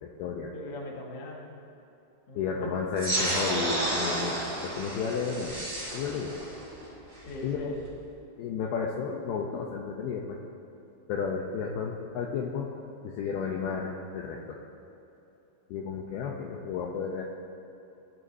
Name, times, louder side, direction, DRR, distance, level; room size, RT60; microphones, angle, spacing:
voice 1, 0.0-0.5 2.4-5.7 5.9-6.3 7.4-7.7 8.4-10.4 11.1-12.7 13.0-14.6 15.7-17.2, left 6 dB, 90° left, -1 dB, 2.2 m, -32 dB
voice 2, 0.5-1.5 2.3-2.8 7.2-7.8, left 1 dB, 65° left, -2 dB, 1.4 m, -40 dB
sound 1, 3.0-8.0, right 1 dB, 30° right, 0.8 m, -32 dB
20.0 x 11.0 x 2.8 m, 3.0 s
omnidirectional pair, 5.5 m